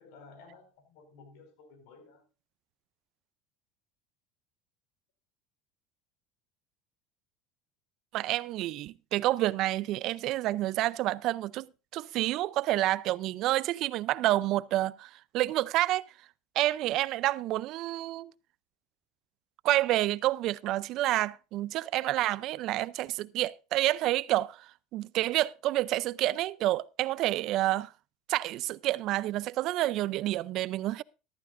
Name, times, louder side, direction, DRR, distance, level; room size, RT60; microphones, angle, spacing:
voice 1, 0.0-2.2, left 4 dB, 75° left, 4.9 m, -54 dB
voice 2, 8.1-11.7 11.9-16.0 16.6-18.3 19.6-24.6 24.9-27.9 28.3-31.0, right 15 dB, 55° right, 0.5 m, -29 dB
14.5 x 13.0 x 2.6 m
supercardioid pair, 115°, 0 cm